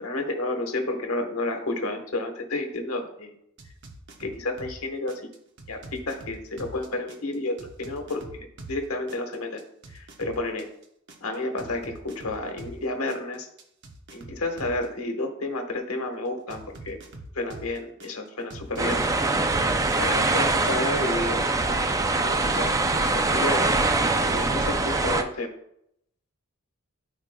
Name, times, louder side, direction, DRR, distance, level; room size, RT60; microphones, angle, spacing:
voice 1, 0.0-3.3 4.2-5.2 5.7-9.6 9.9-10.7 11.2-13.5 14.1-17.0 17.3-19.1 20.0-21.8 22.2-23.7 24.2-25.5, left 2 dB, 90° left, 4 dB, 1.2 m, -31 dB
sound 1, 3.6-4.8 5.1-8.8 9.1-12.8 13.1-14.8 16.5-18.1 18.5-20.4, right 1 dB, 55° right, 1.0 m, -43 dB
sound 2, 18.8-25.2, right 2 dB, 15° right, 0.4 m, -23 dB
13.0 x 4.9 x 2.2 m, 0.75 s
head